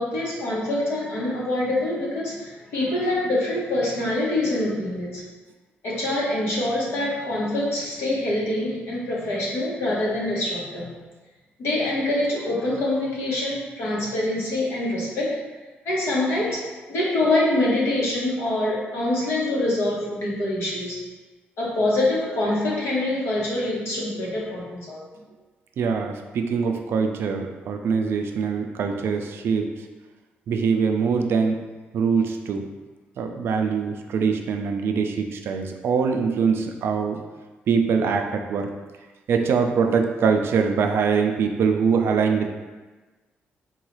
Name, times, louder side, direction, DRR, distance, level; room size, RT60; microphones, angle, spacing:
voice 1, 0.0-5.2 5.8-10.9 11.6-15.4 15.8-16.6 16.9-21.0 21.6-25.0, left 1 dB, 85° left, -5 dB, 1.0 m, -25 dB
voice 2, 25.8-29.7 30.5-31.6 31.9-32.7 33.2-37.2 37.7-38.7 39.3-42.5, right 5 dB, 70° right, 4 dB, 0.4 m, -23 dB
3.9 x 2.3 x 3.0 m, 1.2 s
cardioid pair, 105°, 4 cm